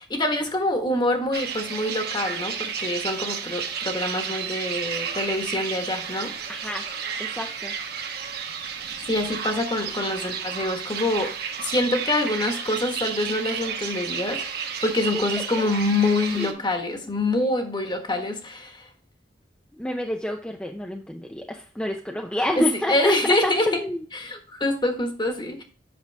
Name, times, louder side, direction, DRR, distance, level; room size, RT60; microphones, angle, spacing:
voice 1, 0.0-6.3 9.0-11.3 11.6-18.9 22.6-23.7 24.1-25.6, left 2 dB, 25° left, 4 dB, 1.4 m, -25 dB
sound 1, 1.3-16.5, right 7 dB, 60° right, 1.3 m, -32 dB
voice 2, 6.5-6.9 7.2-7.7 15.1-15.2 15.6-15.7 16.3-16.6 16.9-17.1 19.7-24.0, left 1 dB, 5° left, 2 dB, 0.6 m, -29 dB
8.3 x 6.0 x 3.4 m, 0.39 s
head